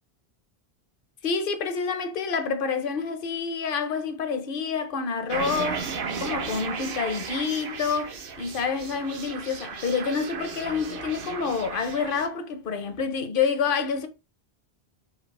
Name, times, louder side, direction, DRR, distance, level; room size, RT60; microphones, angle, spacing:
voice 1, 1.2-5.9 6.2-14.1, left 5 dB, 60° left, 0.8 m, -28 dB
sound 1, 5.3-12.3, right 6 dB, 60° right, 0.8 m, -35 dB
5.3 x 2.7 x 3.2 m
omnidirectional pair, 1.1 m